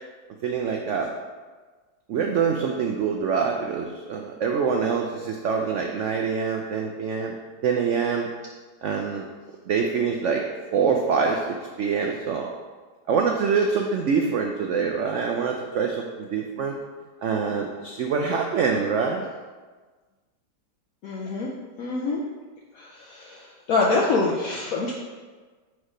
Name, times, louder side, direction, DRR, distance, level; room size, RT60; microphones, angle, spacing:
voice 1, 0.4-1.1 2.1-7.3 7.6-8.3 8.8-9.3 9.7-10.4 10.7-12.5 13.1-16.8 17.2-19.3, right 5 dB, 75° right, 2 dB, 0.6 m, -25 dB
voice 2, 21.0-21.5 21.8-22.2 22.8-23.4 23.7-24.9, left 3 dB, 65° left, -3 dB, 1.0 m, -25 dB
4.7 x 4.5 x 4.9 m, 1.4 s
omnidirectional pair, 1.8 m